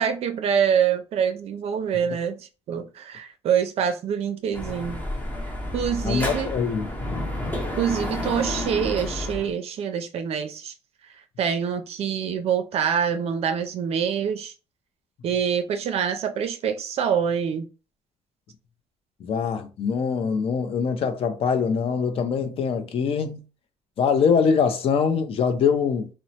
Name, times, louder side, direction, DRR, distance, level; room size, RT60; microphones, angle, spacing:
voice 1, 0.0-5.0 5.7-6.5 7.8-10.7 11.4-14.5 15.2-17.7, right 7 dB, 55° right, 0.4 m, -25 dB
Dog / Motorcycle, 4.5-9.5, left 1 dB, 15° left, 0.7 m, -30 dB
voice 2, 6.0-6.9 19.2-23.4 24.0-26.1, left 6 dB, 50° left, 0.5 m, -23 dB
3.0 x 2.0 x 2.7 m
cardioid pair, 130°, 13 cm